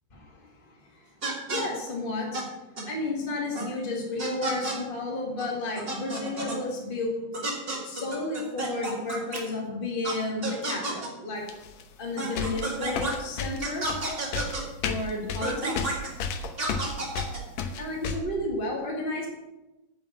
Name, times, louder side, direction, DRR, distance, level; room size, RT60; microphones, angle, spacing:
voice 1, 0.1-1.0 1.5-2.5 2.8-7.3 7.8-11.4 12.0-13.9 14.8-16.0 17.6-19.3, left 2 dB, 40° left, -1 dB, 0.7 m, -32 dB
sound 1, 1.2-1.6 2.3-2.4 2.8-2.9 3.5-3.7 4.2-4.8 5.4-5.5 5.7-6.6 7.3-9.4 10.0-10.1 10.4-11.1 12.2-13.1 13.6-14.6 15.4-16.1 16.6-17.4, right 2 dB, 30° right, 1.1 m, -31 dB
sound 2, 11.5-11.8 12.4-18.2, left 5 dB, 80° left, 1.6 m, -32 dB
9.1 x 6.9 x 7.3 m, 1.0 s
omnidirectional pair, 4.4 m